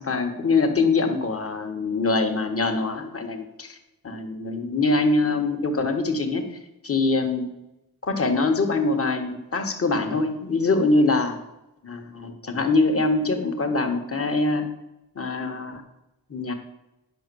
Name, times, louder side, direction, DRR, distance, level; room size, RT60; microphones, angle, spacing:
voice 1, 0.0-3.8 4.0-6.5 6.8-7.5 8.0-11.4 11.8-14.6 15.1-15.8 16.3-16.5, left 3 dB, 35° left, 4 dB, 1.6 m, -23 dB
11.0 x 5.9 x 7.0 m, 0.95 s
wide cardioid pair, 120°, 38 cm